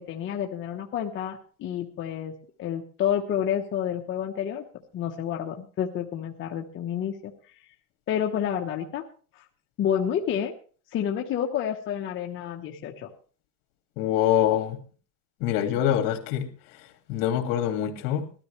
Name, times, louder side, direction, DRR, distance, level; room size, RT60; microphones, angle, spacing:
voice 1, 0.0-2.3 2.6-4.6 4.9-7.3 8.1-9.0 9.3-9.5 9.8-10.5 10.9-13.1, left 9 dB, 35° left, 1 dB, 1.1 m, -29 dB
voice 2, 14.0-14.8 15.4-16.5 16.8-18.2, left 11 dB, 60° left, 6 dB, 2.5 m, -25 dB
19.5 x 13.0 x 3.3 m, 0.39 s
cardioid pair, 160°, 36 cm